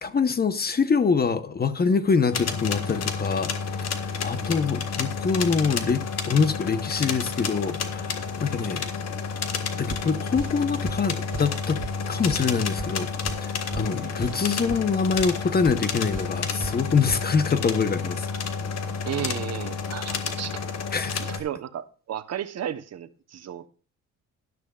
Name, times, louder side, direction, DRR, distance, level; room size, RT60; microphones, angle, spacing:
voice 1, 0.0-3.5 4.0-8.9 9.8-11.8 12.1-13.1 13.4-18.3 20.9-21.2, left 5 dB, 30° left, 1.0 m, -25 dB
sound 1, 2.3-21.4, left 5 dB, 55° left, 1.7 m, -30 dB
sound 2, 9.9-17.5, right 4 dB, 30° right, 3.7 m, -38 dB
voice 2, 19.0-20.6 21.2-23.7, right 10 dB, 55° right, 1.0 m, -34 dB
12.5 x 12.0 x 2.4 m
cardioid pair, 90°, 30 cm